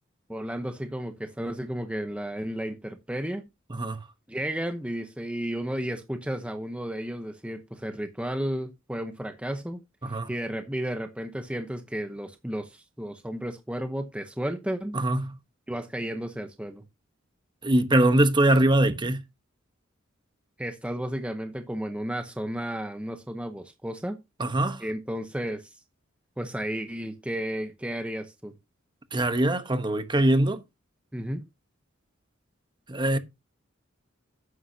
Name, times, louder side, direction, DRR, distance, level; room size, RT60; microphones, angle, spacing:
voice 1, 0.3-3.5 4.3-9.8 10.1-15.0 15.7-16.8 20.6-24.2 24.8-25.8 26.4-28.5 31.1-31.5, right 1 dB, 5° right, 0.8 m, -33 dB
voice 2, 14.9-15.3 17.6-19.2 24.4-24.8 29.1-30.6 32.9-33.2, right 1 dB, 25° right, 1.1 m, -22 dB
12.5 x 9.7 x 2.8 m
head